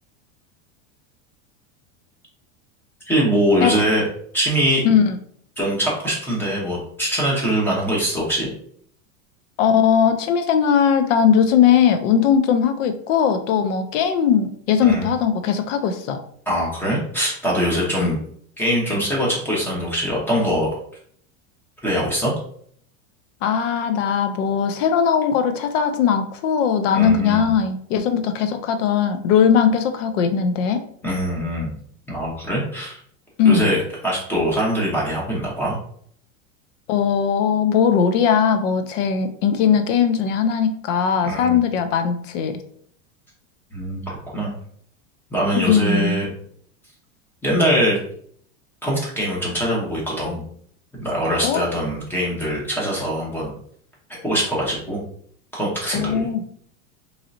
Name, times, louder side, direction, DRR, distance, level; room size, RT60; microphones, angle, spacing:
voice 1, 3.1-4.0 4.3-4.8 5.6-8.5 14.8-15.1 16.5-18.2 18.6-20.7 21.8-22.3 26.9-27.5 31.0-31.7 32.1-33.0 33.4-33.8 34.0-35.8 41.2-41.6 43.7-44.5 45.3-46.3 47.4-48.0 48.8-50.4 50.9-53.5 54.1-55.0 55.5-56.3, equal, 5° left, -5 dB, 0.9 m, -22 dB
voice 2, 4.8-5.2 9.6-16.2 18.0-18.2 23.4-30.8 33.4-33.8 36.9-42.6 45.6-46.2 51.4-51.6 55.9-56.4, left 7 dB, 65° left, 8 dB, 0.6 m, -19 dB
3.7 x 3.2 x 2.6 m, 0.62 s
supercardioid pair, 160°, 41 cm